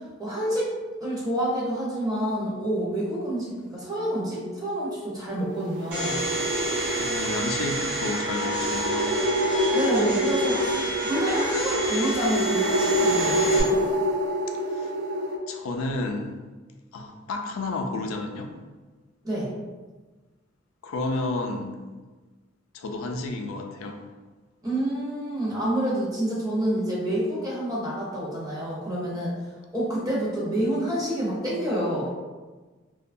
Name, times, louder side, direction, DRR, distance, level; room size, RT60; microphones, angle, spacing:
voice 1, 0.2-0.7 1.0-6.2 9.7-13.8 19.2-19.5 24.6-29.3 29.7-32.1, right 1 dB, 20° right, -6 dB, 0.6 m, -28 dB
sound 1, 5.5-15.4, equal, 55° right, 0.3 m, -27 dB
Domestic sounds home sounds, 5.9-13.6, right 1 dB, 90° right, 1.1 m, -29 dB
voice 2, 7.0-9.2 14.7-14.9 15.5-16.4 16.9-18.5 20.8-21.8 22.7-24.0, left 2 dB, 80° left, 4 dB, 0.3 m, -31 dB
2.7 x 2.2 x 2.5 m, 1.3 s
head